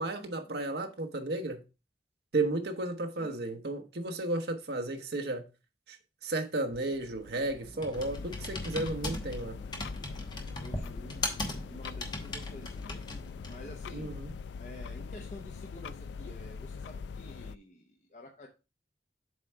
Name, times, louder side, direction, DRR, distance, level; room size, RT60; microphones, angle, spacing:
voice 1, 0.0-1.6 2.3-5.4 5.9-6.0 6.2-9.6 13.9-14.3, right 2 dB, 65° right, 0.9 m, -33 dB
Computer keyboard, 6.7-13.7, left 2 dB, 25° left, 1.0 m, -39 dB
sound 1, 7.9-17.6, left 5 dB, 80° left, 0.3 m, -42 dB
voice 2, 10.5-13.0 13.5-14.1 14.6-18.5, left 1 dB, 40° left, 0.8 m, -49 dB
7.6 x 3.3 x 4.5 m
head